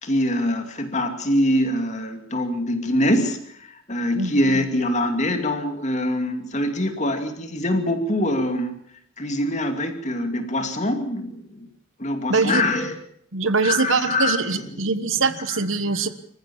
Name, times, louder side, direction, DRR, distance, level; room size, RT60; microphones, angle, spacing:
voice 1, 0.0-3.4 3.9-8.7 9.2-11.6 12.0-13.0 13.6-14.6 15.5-15.6 15.8-16.0, left 1 dB, 35° left, 6 dB, 2.6 m, -24 dB
voice 2, 12.3-12.6 13.3-16.1, right 4 dB, 65° right, 12 dB, 1.3 m, -23 dB
26.0 x 14.5 x 7.2 m, 0.68 s
head